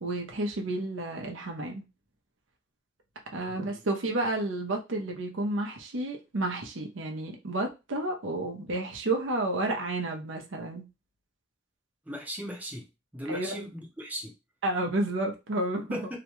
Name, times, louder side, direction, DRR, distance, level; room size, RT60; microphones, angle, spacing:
voice 1, 0.0-1.8 3.3-10.8 13.3-13.6 14.6-16.0, right 2 dB, 80° right, 0.7 m, -31 dB
voice 2, 3.5-3.9 12.1-12.9 13.1-14.3 15.9-16.2, equal, 10° right, 0.7 m, -38 dB
2.9 x 2.2 x 3.0 m
head